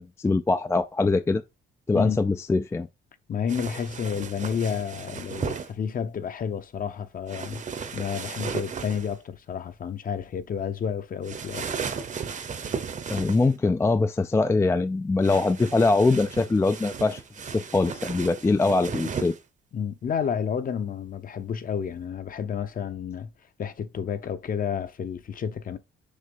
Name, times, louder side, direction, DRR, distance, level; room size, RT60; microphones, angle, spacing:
voice 1, 0.0-1.4 1.9-2.9 13.1-19.3, left 3 dB, 15° left, 0.3 m, -23 dB
voice 2, 3.3-7.6 7.9-11.7 19.7-23.3 23.6-25.8, left 7 dB, 40° left, 0.8 m, -30 dB
sound 1, 3.5-5.7 7.3-9.1 11.2-13.5 15.2-19.4, right 6 dB, 35° right, 0.8 m, -35 dB
6.6 x 3.2 x 5.4 m
cardioid pair, 135°, 21 cm